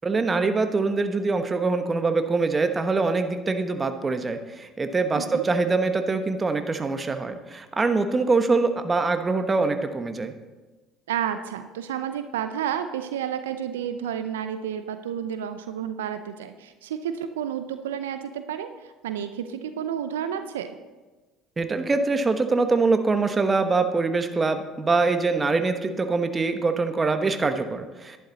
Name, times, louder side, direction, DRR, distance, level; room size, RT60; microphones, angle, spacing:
voice 1, 0.0-10.3 21.6-28.2, right 3 dB, 25° right, 8 dB, 1.1 m, -24 dB
voice 2, 11.1-20.7, right 9 dB, 85° right, 9 dB, 0.5 m, -31 dB
11.0 x 11.0 x 4.0 m, 1.2 s
hypercardioid pair, 65°, 0 cm